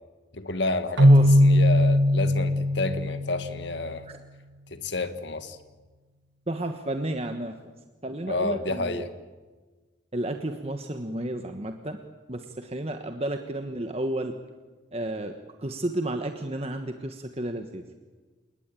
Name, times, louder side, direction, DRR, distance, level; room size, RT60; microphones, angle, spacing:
voice 1, 0.3-4.1 4.7-5.6 8.3-9.1, left 2 dB, 65° left, 9 dB, 2.0 m, -30 dB
voice 2, 1.0-1.4 6.5-7.5 8.0-9.0 10.1-12.0 12.3-14.3 14.9-17.8, right 1 dB, 30° right, 6 dB, 1.3 m, -32 dB
Keyboard (musical), 1.0-3.9, equal, 75° right, 2.1 m, -19 dB
29.5 x 19.0 x 9.2 m, 1.3 s
head